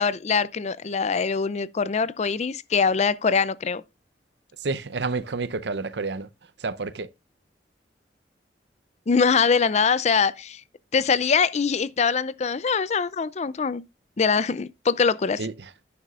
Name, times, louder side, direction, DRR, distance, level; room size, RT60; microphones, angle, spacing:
voice 1, 0.0-3.8 9.1-10.6 10.9-13.8 14.2-15.4, left 5 dB, 40° left, 0.5 m, -23 dB
voice 2, 4.6-7.1 15.4-15.7, right 3 dB, 75° right, 0.7 m, -30 dB
11.0 x 9.5 x 2.4 m
head